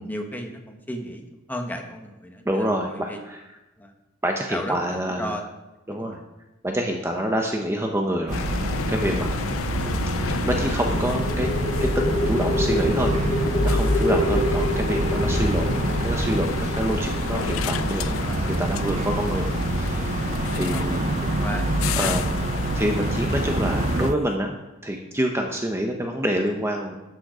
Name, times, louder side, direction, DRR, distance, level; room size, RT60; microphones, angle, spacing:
voice 1, 0.0-3.2 3.8-3.9 4.5-5.5 5.9-6.2 18.1-18.5 20.7-20.9 21.2-21.7, equal, 10° left, 3 dB, 1.4 m, -35 dB
voice 2, 2.4-3.4 4.2-5.4 5.9-6.2 6.6-8.4 8.9-9.3 10.2-11.5 11.8-18.1 18.6-19.5 19.7-21.3 22.0-22.3 22.7-24.6 24.8-26.9, right 1 dB, 15° right, 2 dB, 1.0 m, -27 dB
sound 1, 8.3-24.1, left 8 dB, 85° left, 0.4 m, -31 dB
sound 2, 8.3-24.2, right 2 dB, 35° right, 0.5 m, -27 dB
sound 3, 10.3-18.4, left 1 dB, 30° left, 1.1 m, -27 dB
13.0 x 9.3 x 5.0 m, 1.0 s
head